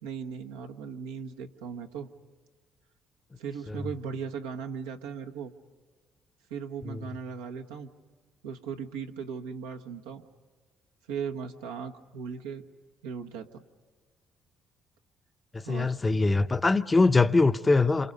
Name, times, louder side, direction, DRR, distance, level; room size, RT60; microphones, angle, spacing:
voice 1, 0.0-2.1 3.4-5.5 6.5-7.9 8.4-10.2 11.1-12.6 13.0-13.6 15.6-15.9, right 6 dB, 90° right, 1.2 m, -37 dB
voice 2, 15.5-18.1, left 3 dB, 25° left, 0.8 m, -23 dB
27.5 x 27.0 x 5.4 m
hypercardioid pair, 55°, 0 cm